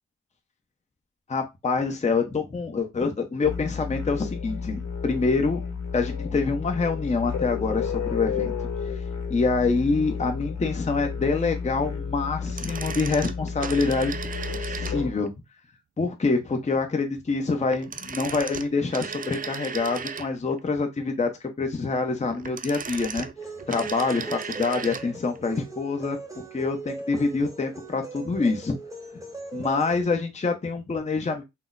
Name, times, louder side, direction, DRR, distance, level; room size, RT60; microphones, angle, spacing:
voice 1, 1.3-5.6 5.9-8.5 9.3-14.1 14.5-15.3 16.0-21.3 21.6-23.3 23.7-26.2 26.5-28.8 29.5-31.4, left 4 dB, 20° left, 4 dB, 0.7 m, -26 dB
sound 1, 3.4-15.1, left 6 dB, 50° left, 0.9 m, -32 dB
sound 2, 12.4-15.3 17.7-20.6 22.2-25.1 25.4-25.5, right 6 dB, 25° right, 0.3 m, -36 dB
sound 3, 23.4-30.0, right 3 dB, 10° right, 0.8 m, -39 dB
3.7 x 2.0 x 2.4 m, 0.22 s
supercardioid pair, 45°, 35 cm